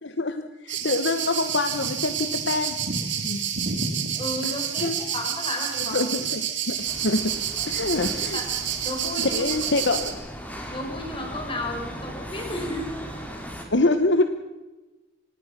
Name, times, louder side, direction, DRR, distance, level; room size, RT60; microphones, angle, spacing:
voice 1, 0.0-3.4 4.4-4.5 4.8-4.9 5.8-7.4 7.7-8.4 9.2-10.2 13.7-14.2, left 2 dB, 60° left, 9 dB, 1.1 m, -25 dB
sound 1, 0.7-10.1, right 8 dB, 65° right, 2.8 m, -29 dB
voice 2, 4.2-6.0 8.3-8.5 8.8-9.4 10.7-12.9, left 1 dB, 25° left, 2 dB, 5.2 m, -33 dB
sound 2, 6.9-13.7, equal, 10° left, 2.9 m, -38 dB
25.5 x 19.0 x 6.0 m, 1.1 s
head